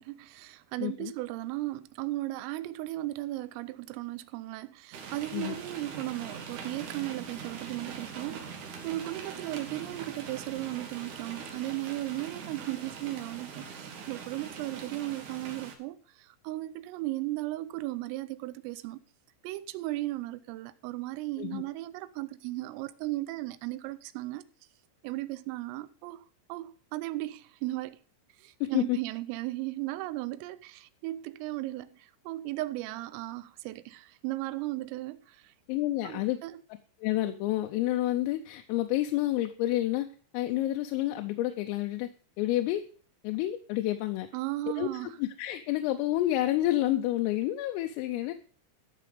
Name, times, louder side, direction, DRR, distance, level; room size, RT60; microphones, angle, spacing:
voice 1, 0.0-8.5 8.8-19.0 19.4-24.4 25.0-26.2 26.5-28.0 28.4-35.5 36.0-36.6 44.3-45.2, right 17 dB, 85° right, 3.2 m, -36 dB
voice 2, 0.8-1.1 5.3-5.6 21.4-21.6 28.6-29.0 35.7-36.4 37.0-40.1 40.3-42.1 42.4-42.8 43.2-44.3 44.8-48.3, left 14 dB, 85° left, 3.3 m, -29 dB
sound 1, 4.9-15.7, right 6 dB, 65° right, 2.0 m, -42 dB
12.5 x 6.7 x 5.0 m
omnidirectional pair, 5.9 m